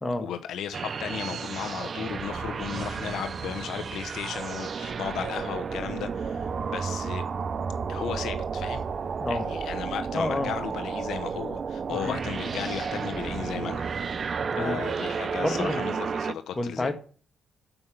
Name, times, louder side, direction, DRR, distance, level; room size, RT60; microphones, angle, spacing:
voice 1, 0.2-7.2 7.9-8.8 9.3-13.8 14.6-16.9, left 9 dB, 75° left, 0.8 m, -35 dB
sound 1, 0.7-16.3, right 5 dB, 45° right, 0.4 m, -32 dB
voice 2, 10.1-10.5 12.1-12.2 14.5-14.8 15.4-15.8 16.6-16.9, left 1 dB, 15° left, 1.4 m, -29 dB
6.9 x 5.3 x 7.2 m
cardioid pair, 90°, 0 cm